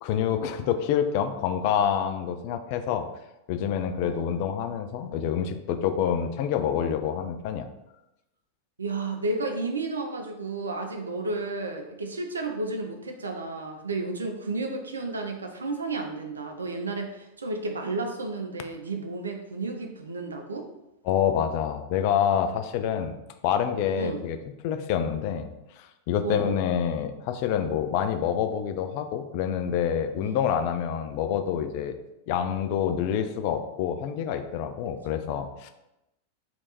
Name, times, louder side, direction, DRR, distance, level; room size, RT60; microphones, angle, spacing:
voice 1, 0.0-3.1 3.5-7.7 21.1-23.2 23.4-24.4 24.6-25.5 25.8-32.0 32.3-35.7, left 8 dB, 45° left, 8 dB, 0.4 m, -27 dB
voice 2, 8.8-20.7 24.0-24.3 26.2-26.6 30.2-30.4, right 3 dB, 75° right, 4 dB, 0.6 m, -32 dB
3.4 x 3.0 x 4.0 m, 0.89 s
figure-of-eight pair, 90°, 0 cm